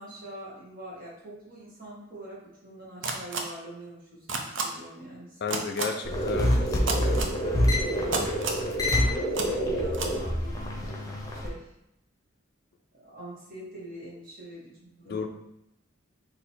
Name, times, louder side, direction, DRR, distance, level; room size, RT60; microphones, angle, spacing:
voice 1, 0.0-5.5 6.0-8.3 9.6-10.6 10.9-11.0 11.3-11.7 12.9-15.1, right 1 dB, 45° right, -6 dB, 1.5 m, -44 dB
sound 1, 3.0-3.4 4.3-4.6 5.5-5.8 6.9-7.3 8.1-8.6 9.3-9.5 9.9-10.1, right 4 dB, 65° right, 0.6 m, -29 dB
voice 2, 5.4-6.5 7.0-7.4 15.1-15.3, left 5 dB, 50° left, 5 dB, 0.4 m, -32 dB
sound 2, 6.0-11.5, equal, 15° left, 0.8 m, -26 dB
4.0 x 2.8 x 4.4 m, 0.83 s
head